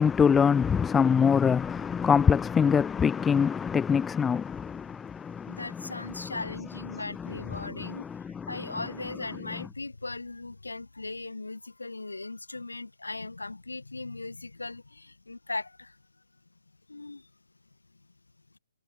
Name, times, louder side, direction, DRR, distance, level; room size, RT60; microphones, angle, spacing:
voice 1, 0.0-6.3 6.9-8.6, left 6 dB, 10° left, 0.4 m, -25 dB
voice 2, 5.5-8.0 8.5-16.0 16.9-17.3, left 3 dB, 90° left, 5.9 m, -38 dB
figure-of-eight pair, 135°, 0 cm